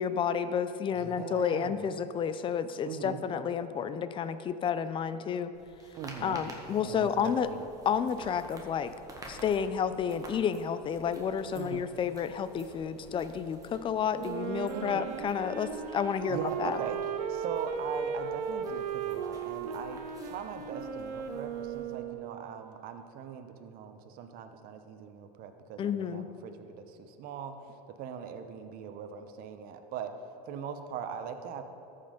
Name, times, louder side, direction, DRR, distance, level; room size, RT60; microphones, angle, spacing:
voice 1, 0.0-5.5 6.2-7.5 7.9-8.9 9.3-16.8 25.8-26.3, left 7 dB, 25° left, 12 dB, 0.4 m, -31 dB
voice 2, 1.0-1.8 2.9-3.2 6.0-6.4 6.8-7.7 11.5-11.9 14.7-15.2 16.3-17.0 17.3-30.1 30.5-31.6, right 7 dB, 45° right, 7 dB, 0.9 m, -41 dB
sound 1, 5.5-21.9, right 1 dB, 15° right, 1.6 m, -52 dB
Wind instrument woodwind instrument, 14.1-22.5, right 6 dB, 75° right, 0.8 m, -36 dB
13.5 x 5.6 x 5.1 m, 2.9 s
supercardioid pair, 115°, 20 cm